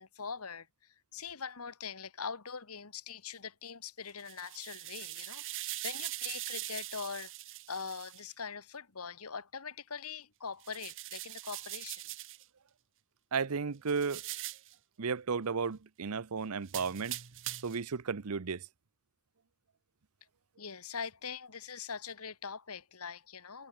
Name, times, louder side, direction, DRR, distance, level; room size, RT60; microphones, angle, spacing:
voice 1, 0.0-7.3 7.7-12.0 20.6-23.7, left 6 dB, 80° left, 1.8 m, -42 dB
sound 1, 4.1-8.2 10.6-12.4 13.9-14.7 16.7-17.8, right 15 dB, 60° right, 1.1 m, -42 dB
voice 2, 13.3-14.2 15.0-17.2 17.6-18.7, right 5 dB, 80° right, 0.8 m, -34 dB
head